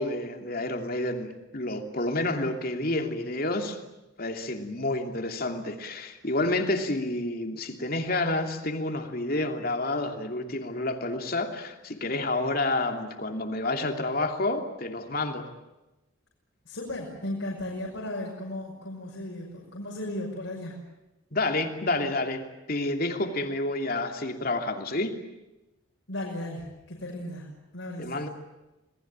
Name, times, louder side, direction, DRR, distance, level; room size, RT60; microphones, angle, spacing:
voice 1, 0.0-3.8 4.2-15.5 21.3-25.2 28.0-28.3, left 2 dB, 45° left, 5 dB, 3.0 m, -29 dB
voice 2, 16.6-20.8 26.1-28.2, left 1 dB, 70° left, -3 dB, 5.9 m, -36 dB
27.5 x 20.0 x 9.0 m, 1.0 s
head